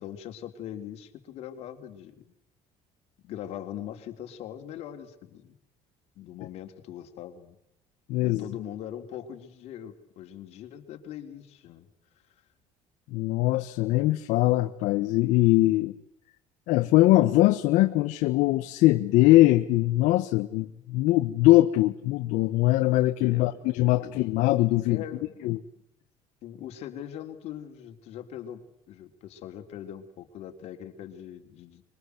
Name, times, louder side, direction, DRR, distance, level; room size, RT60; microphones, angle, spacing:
voice 1, 0.0-2.3 3.2-5.6 6.2-7.6 8.2-11.9 23.3-23.5 24.0-24.2 24.8-25.3 26.4-31.8, left 10 dB, 55° left, 5 dB, 3.5 m, -41 dB
voice 2, 8.1-8.4 13.1-15.9 16.7-25.0 25.4-25.6, left 17 dB, 80° left, 6 dB, 1.4 m, -22 dB
25.5 x 23.0 x 8.1 m, 0.81 s
cardioid pair, 175°, 13 cm